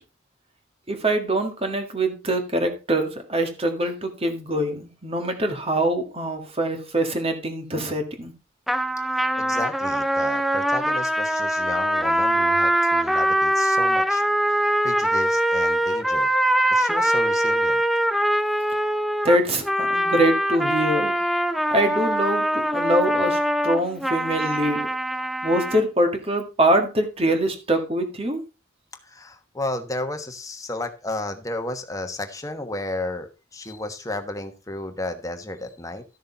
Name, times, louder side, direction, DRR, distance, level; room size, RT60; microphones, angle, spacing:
voice 1, 0.9-8.3 19.2-21.2 21.7-24.9 25.4-28.4, right 1 dB, 30° right, 6 dB, 1.8 m, -24 dB
sound 1, 8.7-25.8, right 1 dB, ahead, 0.5 m, -23 dB
voice 2, 9.1-14.2 14.8-16.3 16.7-17.8 29.0-36.0, left 2 dB, 15° left, 6 dB, 1.2 m, -33 dB
13.0 x 6.6 x 3.9 m, 0.29 s
head